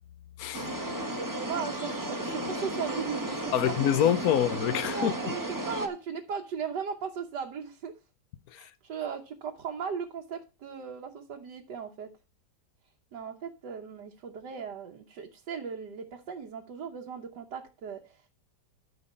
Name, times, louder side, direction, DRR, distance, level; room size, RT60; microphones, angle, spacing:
voice 1, 0.4-0.8 3.5-5.1 8.5-8.7, left 10 dB, 60° left, 1.2 m, -26 dB
sound 1, 0.5-5.9, right 1 dB, 15° right, 1.1 m, -34 dB
voice 2, 1.2-3.9 4.9-7.9 8.6-12.1 13.1-18.2, right 6 dB, 75° right, 1.6 m, -37 dB
13.0 x 5.7 x 4.3 m
omnidirectional pair, 1.9 m